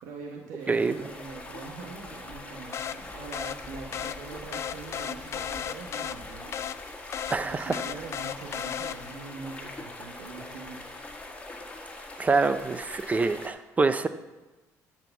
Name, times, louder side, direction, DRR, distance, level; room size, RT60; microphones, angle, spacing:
voice 1, 0.0-6.8 7.4-10.8, right 4 dB, 80° right, 0 dB, 1.4 m, -43 dB
sound 1, 0.6-13.5, left 2 dB, 20° left, 1.6 m, -43 dB
sound 2, 2.7-9.3, left 9 dB, 45° left, 0.4 m, -36 dB
voice 2, 7.3-7.8 12.2-14.1, right 4 dB, 25° right, 12 dB, 0.5 m, -25 dB
11.5 x 4.8 x 7.1 m, 1.2 s
cardioid pair, 100°, 6 cm